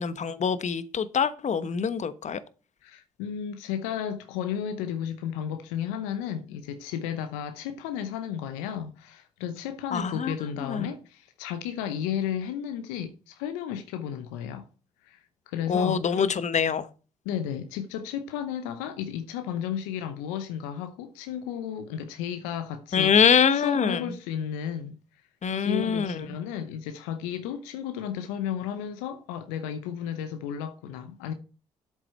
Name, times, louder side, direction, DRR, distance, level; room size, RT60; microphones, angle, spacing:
voice 1, 0.0-2.4 9.9-10.3 10.6-10.9 15.7-16.9 22.9-24.0 25.4-26.3, left 6 dB, 50° left, 1.1 m, -24 dB
voice 2, 2.8-14.7 15.0-16.0 17.2-25.0 25.5-31.3, left 9 dB, 85° left, 0.8 m, -33 dB
8.3 x 7.4 x 4.4 m
hypercardioid pair, 45°, 15 cm